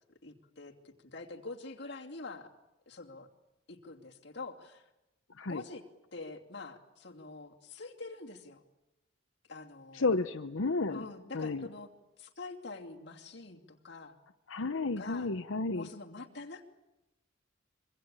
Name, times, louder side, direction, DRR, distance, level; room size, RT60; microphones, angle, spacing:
voice 1, 0.2-2.5 2.9-3.3 3.7-4.9 5.5-5.8 6.1-8.6 9.5-10.0 10.9-11.9 12.2-14.2 14.9-15.3 15.7-16.6, left 3 dB, 60° left, 1 dB, 2.7 m, -45 dB
voice 2, 9.9-11.0 11.3-11.7 14.5-15.9, left 3 dB, 85° left, 7 dB, 0.9 m, -32 dB
25.5 x 24.0 x 8.9 m, 0.97 s
head